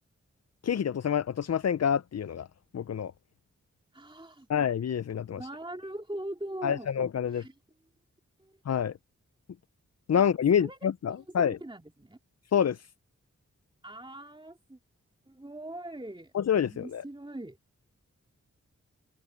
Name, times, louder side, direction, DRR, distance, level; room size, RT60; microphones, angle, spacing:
voice 1, 0.6-2.5 2.7-3.1 4.5-5.4 6.6-7.4 8.7-9.0 10.1-11.6 12.5-12.9 16.3-17.0, left 8 dB, 55° left, 0.5 m, -27 dB
voice 2, 3.9-4.5 5.3-6.9 7.3-7.5 8.4-8.5 10.2-10.3 10.6-10.8 11.4-12.2 13.8-14.8 15.3-16.3 16.6-17.6, right 1 dB, 15° right, 2.7 m, -41 dB
cardioid pair, 45°, 31 cm